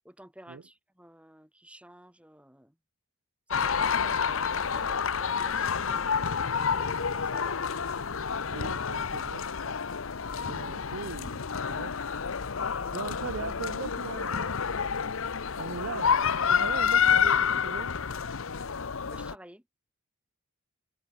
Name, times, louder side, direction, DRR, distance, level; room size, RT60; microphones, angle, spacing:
voice 1, 0.0-2.8 3.5-6.1 6.3-8.7 12.7-13.0 19.0-19.7, right 1 dB, 5° right, 4.2 m, -52 dB
sound 1, 3.5-19.3, left 6 dB, 70° left, 0.8 m, -29 dB
voice 2, 8.5-9.8 10.4-12.0 12.9-14.6 15.6-16.2 16.5-17.9, right 5 dB, 65° right, 0.6 m, -39 dB
head